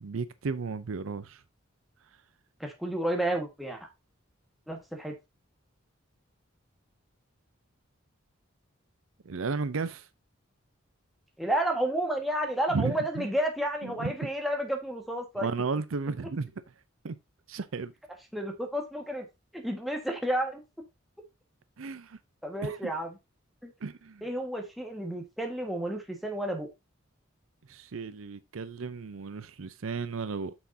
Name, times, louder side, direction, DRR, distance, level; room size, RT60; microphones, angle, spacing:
voice 1, 0.0-1.4 9.2-10.1 12.7-13.3 13.8-14.1 15.4-16.5 17.0-17.2 17.5-17.9 21.8-22.2 22.6-22.9 23.8-24.3 27.7-30.5, right 4 dB, 75° right, 0.6 m, -34 dB
voice 2, 2.6-3.9 4.7-5.1 11.4-15.5 18.3-19.3 19.5-20.6 22.4-23.1 23.6-23.7 24.2-26.7, right 1 dB, ahead, 1.6 m, -31 dB
8.1 x 6.2 x 2.7 m
head